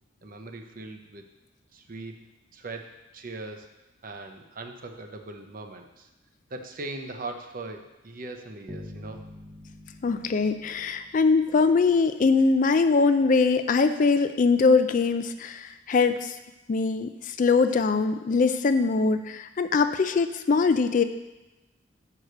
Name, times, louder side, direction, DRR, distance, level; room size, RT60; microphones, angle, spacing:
voice 1, 0.2-1.2 1.7-3.7 4.0-6.1 6.5-9.3, right 2 dB, 45° right, 5 dB, 0.7 m, -40 dB
sound 1, 8.7-12.1, left 1 dB, 5° left, 0.8 m, -46 dB
voice 2, 10.0-16.4 16.7-21.0, left 4 dB, 45° left, 9 dB, 0.4 m, -22 dB
6.3 x 4.7 x 6.6 m, 1.0 s
head